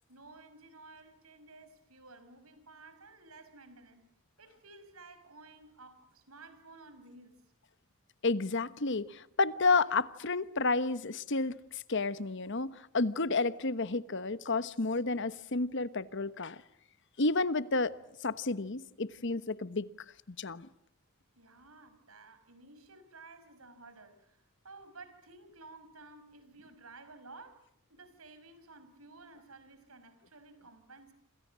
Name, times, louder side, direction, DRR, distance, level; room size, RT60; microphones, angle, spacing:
voice 1, 0.1-4.0 4.4-7.4 21.3-24.4 24.6-27.6 27.9-31.1, right 3 dB, 90° right, 11 dB, 5.6 m, -54 dB
voice 2, 8.2-16.6 17.2-17.9 18.2-19.9 20.4-20.7, left 3 dB, 60° left, 15 dB, 1.2 m, -31 dB
28.0 x 27.0 x 7.6 m, 0.73 s
head